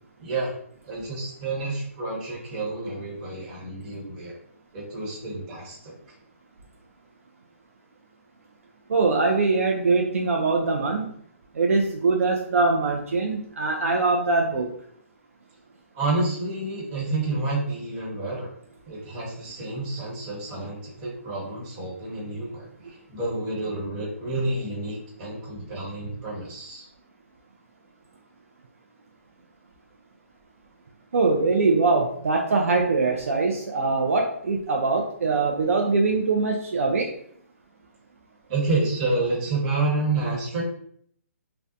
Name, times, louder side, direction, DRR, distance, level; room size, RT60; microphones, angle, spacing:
voice 1, 0.2-0.5 0.8-4.4 4.7-5.9 15.9-18.5 18.9-26.9 38.5-40.6, right 2 dB, 30° right, -4 dB, 1.1 m, -29 dB
voice 2, 8.9-11.1 11.6-14.7 31.1-37.1, right 3 dB, 70° right, 1 dB, 0.4 m, -22 dB
2.6 x 2.1 x 2.4 m, 0.64 s
figure-of-eight pair, 140°, 8 cm